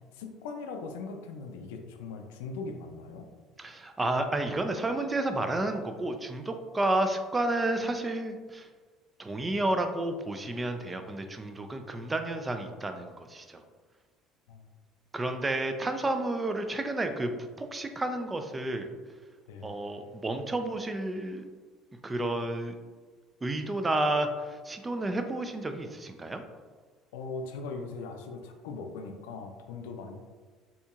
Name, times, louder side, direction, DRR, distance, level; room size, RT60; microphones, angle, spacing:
voice 1, 0.1-3.3 14.5-14.6 19.5-19.8 27.1-30.2, left 4 dB, 90° left, 5 dB, 0.4 m, -40 dB
voice 2, 3.6-8.7 9.2-13.6 15.1-17.3 17.6-18.9 19.6-21.4 22.0-22.8 23.4-26.4, right 2 dB, 20° right, 7 dB, 0.3 m, -31 dB
4.1 x 2.8 x 2.3 m, 1.4 s
supercardioid pair, 95°, 0 cm